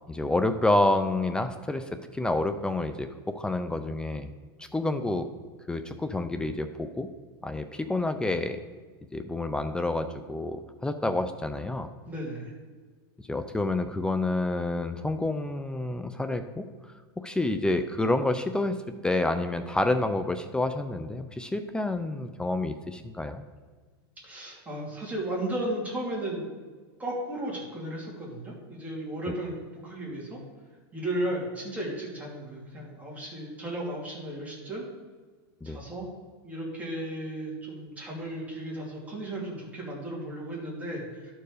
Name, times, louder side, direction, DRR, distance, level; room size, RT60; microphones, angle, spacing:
voice 1, 0.1-1.8 2.1-4.3 4.6-5.3 5.7-7.1 7.4-8.6 9.1-11.9 13.3-16.6 17.2-18.7 19.0-23.4 35.6-35.8, left 2 dB, 5° left, 8 dB, 0.4 m, -28 dB
voice 2, 12.0-12.5 24.2-26.4 27.0-30.4 30.9-34.8 35.6-36.1 36.4-41.3, right 1 dB, 10° right, -4 dB, 2.8 m, -35 dB
12.0 x 4.6 x 4.9 m, 1.4 s
supercardioid pair, 135°, 13 cm